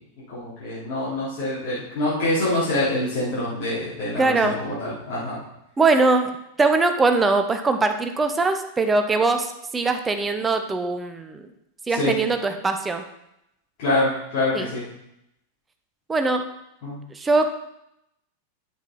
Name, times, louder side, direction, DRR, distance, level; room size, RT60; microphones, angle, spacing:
voice 1, 0.3-5.4 11.9-12.2 13.8-14.8 16.8-17.0, left 1 dB, 45° left, -10 dB, 4.3 m, -25 dB
voice 2, 4.2-4.6 5.8-11.5 11.9-13.0 14.5-14.7 16.1-16.5 17.1-17.5, right 3 dB, 15° right, 7 dB, 0.9 m, -21 dB
9.1 x 7.6 x 4.3 m, 0.81 s
figure-of-eight pair, 90°, 0 cm